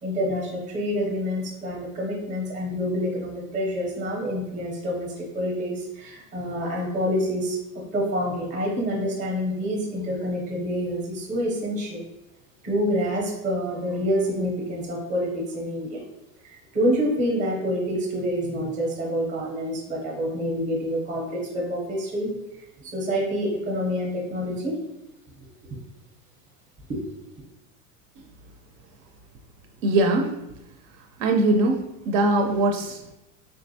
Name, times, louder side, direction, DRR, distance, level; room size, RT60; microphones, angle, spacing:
voice 1, 0.0-12.0 12.6-16.0 16.4-22.3 22.8-24.8 26.9-27.0, equal, 15° right, -1 dB, 0.6 m, -27 dB
voice 2, 29.8-30.4 31.2-33.1, right 2 dB, 60° right, 3 dB, 0.5 m, -22 dB
3.7 x 3.3 x 2.6 m, 0.89 s
supercardioid pair, 160°, 44 cm